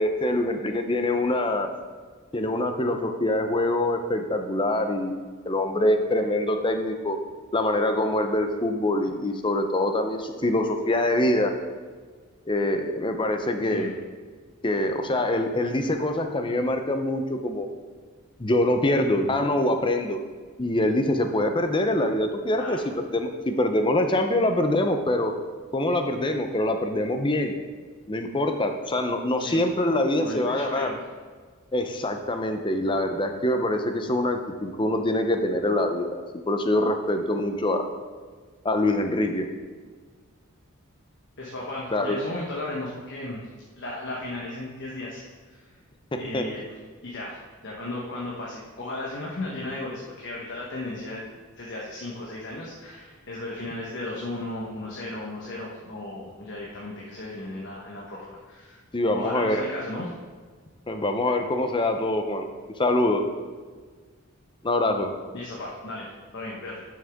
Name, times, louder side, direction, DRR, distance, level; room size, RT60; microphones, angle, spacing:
voice 1, 0.0-1.7 2.3-5.2 5.5-7.2 7.5-11.5 12.5-13.9 14.6-17.7 18.4-20.2 20.6-22.8 23.1-25.3 25.7-27.6 28.1-30.9 31.7-37.9 38.6-39.5 41.9-42.2 46.3-46.4 58.9-59.6 60.9-62.5 62.8-63.2 64.6-65.1, left 1 dB, 20° left, 6 dB, 0.6 m, -24 dB
voice 2, 30.2-31.0 41.4-43.5 43.8-45.7 46.2-46.6 47.0-51.3 51.6-58.8 59.1-60.1 65.3-66.8, left 2 dB, 55° left, -4 dB, 1.2 m, -35 dB
10.5 x 6.4 x 3.6 m, 1.5 s
head